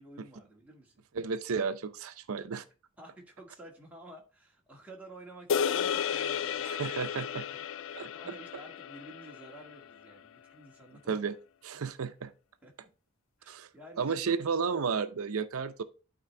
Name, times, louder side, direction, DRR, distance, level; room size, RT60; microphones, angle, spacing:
voice 1, 0.0-1.0 3.0-11.3 11.7-11.8 12.6-12.9 13.4-14.5, right 1 dB, 5° right, 1.7 m, -52 dB
voice 2, 1.1-2.6 6.6-7.4 7.9-8.1 11.1-11.3 11.6-12.3 13.5-13.7 14.0-15.8, right 5 dB, 90° right, 0.6 m, -32 dB
sound 1, 5.5-10.0, left 7 dB, 65° left, 0.3 m, -33 dB
11.5 x 4.4 x 3.3 m
head